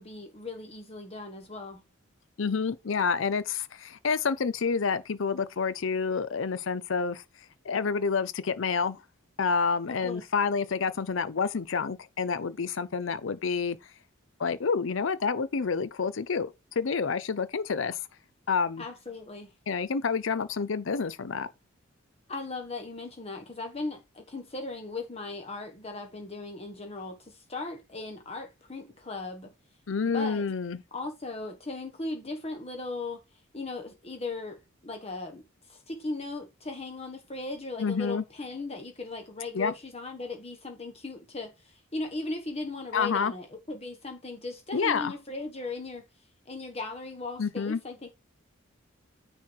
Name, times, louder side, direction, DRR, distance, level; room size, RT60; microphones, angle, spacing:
voice 1, 0.0-1.8 9.9-10.2 18.8-19.5 22.3-29.5 30.0-30.5 30.9-33.2 33.5-34.6 34.8-46.0 46.5-48.1, left 3 dB, 30° left, 1.4 m, -38 dB
voice 2, 2.4-7.2 7.6-9.0 9.4-13.8 14.4-18.0 18.5-18.8 19.7-21.5 29.9-30.8 37.8-38.2 39.5-39.7 42.9-43.3 44.7-45.1 47.4-47.8, left 5 dB, 65° left, 0.6 m, -28 dB
9.6 x 4.4 x 4.6 m
head